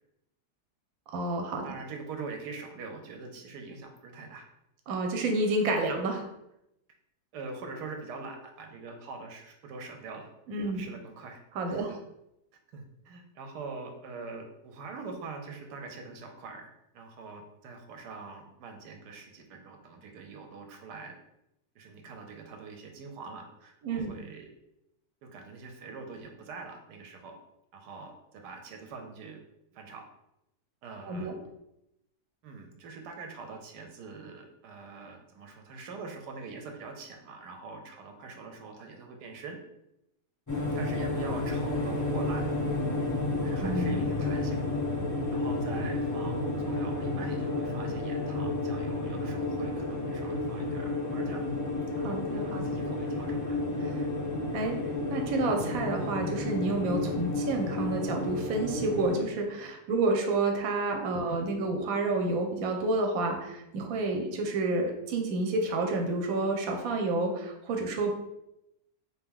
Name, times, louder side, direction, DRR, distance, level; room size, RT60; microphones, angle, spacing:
voice 1, 1.1-1.7 4.9-6.2 10.5-10.9 11.5-12.0 23.8-24.2 31.1-31.4 43.6-44.0 52.0-52.6 53.8-54.0 54.5-54.8 55.1-68.1, right 2 dB, 65° right, 3 dB, 1.0 m, -29 dB
voice 2, 1.6-4.5 7.3-10.3 10.6-11.4 11.7-11.9 12.7-21.1 21.7-24.5 25.2-27.3 27.7-29.4 29.7-30.0 30.8-31.3 32.4-39.6 40.5-42.5 43.4-44.6 45.3-51.4 52.5-53.6 61.2-61.5, right 4 dB, 90° right, 4 dB, 1.3 m, -44 dB
sound 1, 40.5-59.2, left 2 dB, 30° left, 0.3 m, -31 dB
3.8 x 2.9 x 3.7 m, 0.84 s
omnidirectional pair, 1.7 m